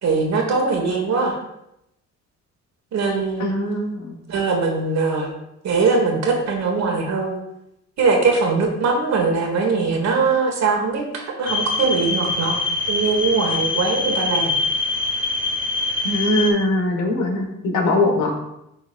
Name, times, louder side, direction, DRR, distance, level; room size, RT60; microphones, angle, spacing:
voice 1, 0.0-1.4 2.9-3.5 4.3-5.3 5.6-7.4 8.0-12.6 12.9-14.6, right 4 dB, 60° right, 2 dB, 1.5 m, -21 dB
voice 2, 3.4-4.1 16.0-18.4, left 1 dB, 75° left, 2 dB, 1.4 m, -21 dB
sound 1, 11.5-16.5, left 3 dB, 40° left, 1.6 m, -24 dB
10.0 x 3.9 x 2.5 m, 0.82 s
cardioid pair, 90°, 30 cm